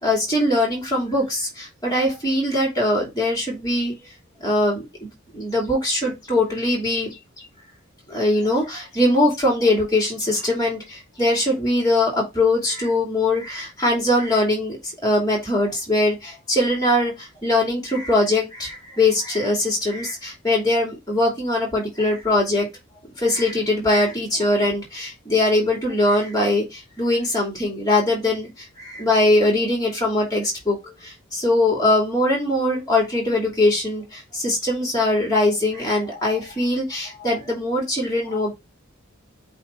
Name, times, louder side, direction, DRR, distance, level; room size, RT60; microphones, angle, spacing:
voice 1, 0.0-3.9 4.4-7.2 8.1-22.7 23.2-38.5, left 1 dB, 20° left, -1 dB, 2.6 m, -21 dB
8.1 x 2.8 x 4.4 m, 0.22 s
head